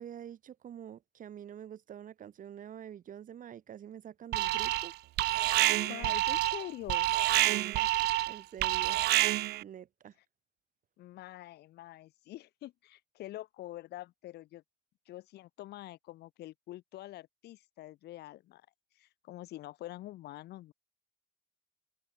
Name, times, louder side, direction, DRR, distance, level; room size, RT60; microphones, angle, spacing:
voice 1, 0.0-4.9 7.5-7.8 8.3-9.0 9.6-10.1, right 9 dB, 50° right, 5.9 m, -46 dB
Alarm, 4.3-4.9 5.2-9.6, right 17 dB, 75° right, 0.8 m, -28 dB
voice 2, 5.7-7.1 11.0-14.6 15.1-18.6 19.0-20.7, left 15 dB, 75° left, 7.7 m, -46 dB
open air
cardioid pair, 110°, 17 cm